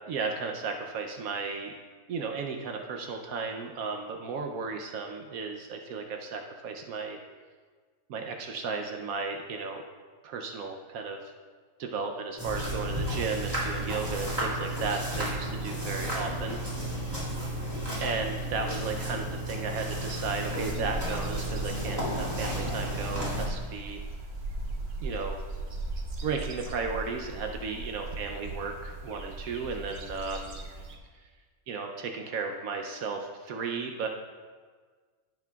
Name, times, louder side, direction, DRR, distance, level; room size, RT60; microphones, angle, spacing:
voice 1, 0.1-1.7 2.1-7.2 8.1-9.8 10.2-11.2 11.8-16.6 18.0-24.0 25.0-25.4 26.2-30.6 31.7-34.1, right 4 dB, 75° right, 3 dB, 1.1 m, -34 dB
sound 1, 12.4-23.5, right 1 dB, 15° right, 2.2 m, -33 dB
sound 2, 20.6-31.0, right 2 dB, 50° right, 1.1 m, -38 dB
15.0 x 5.8 x 2.3 m, 1.5 s
omnidirectional pair, 1.5 m